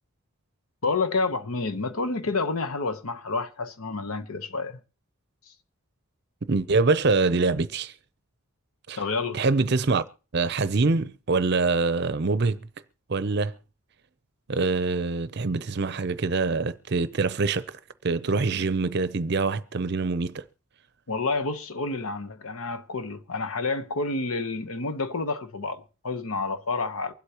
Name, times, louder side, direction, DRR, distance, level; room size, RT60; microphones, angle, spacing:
voice 1, 0.8-4.8 8.9-9.4 21.1-27.1, left 3 dB, 80° left, 1.0 m, -29 dB
voice 2, 6.5-7.9 8.9-9.0 9.3-10.0 10.3-12.6 13.1-13.5 14.5-17.7 18.0-20.4, right 3 dB, 50° right, 0.6 m, -24 dB
24.0 x 8.1 x 2.9 m
head